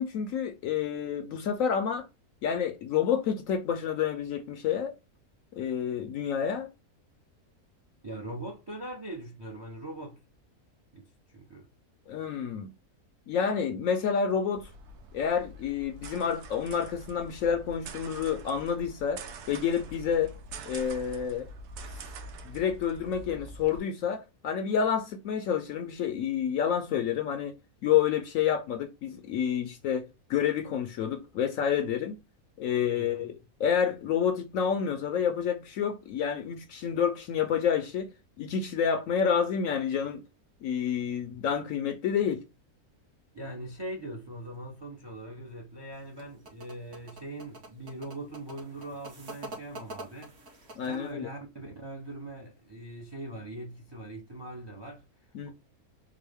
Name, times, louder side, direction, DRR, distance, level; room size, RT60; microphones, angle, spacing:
voice 1, 0.0-2.1 2.4-4.9 5.6-6.7 12.1-12.7 13.3-14.7 15.1-19.2 19.5-20.3 20.7-21.5 22.4-27.5 27.8-32.2 32.6-33.3 33.6-38.1 38.4-40.2 40.6-42.4 50.8-51.3 55.3-55.5, left 7 dB, 70° left, 0.9 m, -29 dB
voice 2, 8.0-10.2 10.9-11.7 32.9-33.3 43.3-50.3 50.8-55.0, right 1 dB, 25° right, 0.5 m, -41 dB
sound 1, 14.5-23.8, right 2 dB, 85° right, 1.2 m, -45 dB
sound 2, 45.9-51.1, right 2 dB, 50° right, 1.2 m, -46 dB
3.8 x 2.1 x 3.3 m
omnidirectional pair, 1.6 m